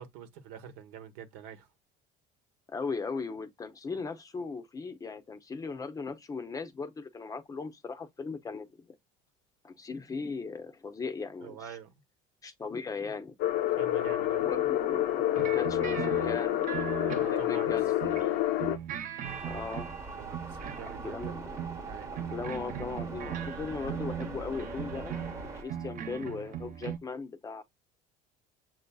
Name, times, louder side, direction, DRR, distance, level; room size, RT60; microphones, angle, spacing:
voice 1, 0.0-1.7 11.4-11.9 13.7-14.5 17.1-17.7 18.6-18.9 20.2-21.4 21.8-22.1, right 8 dB, 85° right, 1.1 m, -45 dB
voice 2, 2.7-9.0 9.6-11.8 12.4-13.3 14.4-18.2 19.4-19.9 21.0-21.6 22.3-25.2 25.5-27.6, left 4 dB, 20° left, 0.6 m, -38 dB
sound 1, 13.4-18.8, left 13 dB, 60° left, 0.6 m, -28 dB
sound 2, 15.4-18.3 18.6-20.9 21.2-27.0, right 9 dB, 50° right, 0.7 m, -39 dB
sound 3, 19.2-25.6, right 3 dB, 15° right, 0.9 m, -41 dB
7.2 x 2.6 x 2.2 m
cardioid pair, 130°, 18 cm